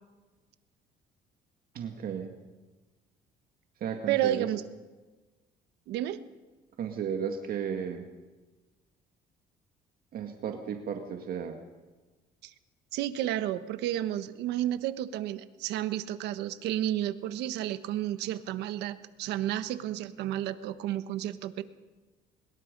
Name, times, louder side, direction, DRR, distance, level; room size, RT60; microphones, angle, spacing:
voice 1, 1.7-2.3 3.8-4.5 6.8-8.0 10.1-11.6, right 7 dB, 60° right, 4 dB, 2.0 m, -34 dB
voice 2, 4.1-4.6 5.9-6.2 12.4-12.5 12.9-21.6, right 12 dB, 85° right, 11 dB, 1.3 m, -31 dB
24.5 x 21.5 x 5.4 m, 1.2 s
cardioid pair, 110°, 17 cm